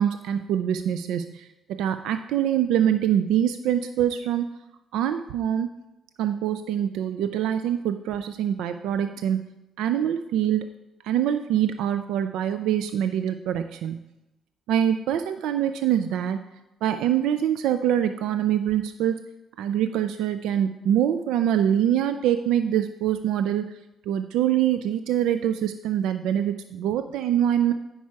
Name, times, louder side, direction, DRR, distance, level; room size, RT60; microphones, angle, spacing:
voice 1, 0.0-4.5 4.9-5.7 6.2-9.5 9.8-10.6 11.0-14.0 14.7-16.4 16.8-19.2 19.6-23.8 24.1-27.7, right 10 dB, 90° right, 10 dB, 0.4 m, -24 dB
9.4 x 5.5 x 4.7 m, 0.95 s
cardioid pair, 90°, 0 cm